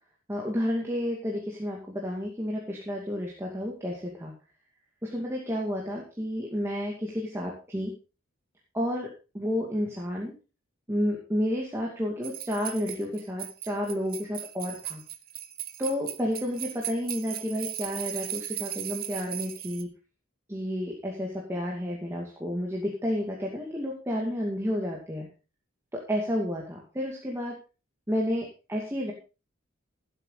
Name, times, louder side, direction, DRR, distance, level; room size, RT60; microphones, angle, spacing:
voice 1, 0.3-4.3 5.0-7.9 8.7-9.1 9.3-10.3 10.9-15.0 15.8-19.9 20.5-25.3 25.9-27.5 28.1-29.1, equal, 15° right, -2 dB, 2.4 m, -31 dB
sound 1, 12.2-19.8, right 11 dB, 45° right, 1.1 m, -37 dB
16.5 x 8.2 x 4.0 m, 0.31 s
head